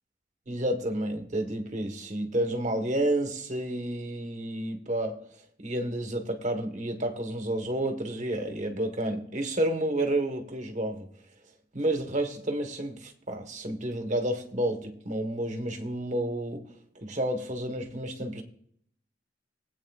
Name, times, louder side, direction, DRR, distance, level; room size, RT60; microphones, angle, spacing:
voice 1, 0.5-5.3 5.6-11.1 11.7-16.6 16.9-18.4, right 1 dB, 40° right, 1.4 m, -30 dB
20.0 x 8.6 x 2.4 m
head